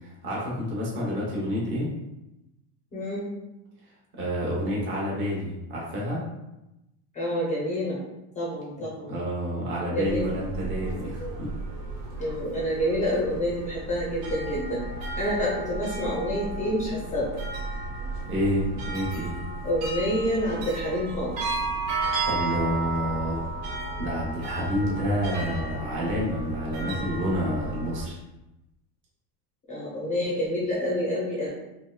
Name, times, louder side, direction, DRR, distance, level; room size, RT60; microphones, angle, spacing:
voice 1, 0.0-1.9 4.1-6.2 9.1-11.5 18.2-19.3 22.2-23.4 24.0-28.2, equal, 25° right, -4 dB, 0.7 m, -29 dB
voice 2, 2.9-3.3 7.1-8.0 8.3-9.1 9.9-10.2 12.2-14.8 15.2-17.4 19.6-21.3 24.8-24.9 29.7-31.5, equal, 15° left, -5 dB, 0.5 m, -28 dB
sound 1, 10.1-28.1, right 3 dB, 60° right, 0.8 m, -33 dB
3.4 x 3.1 x 2.2 m, 0.92 s
cardioid pair, 155°, 43 cm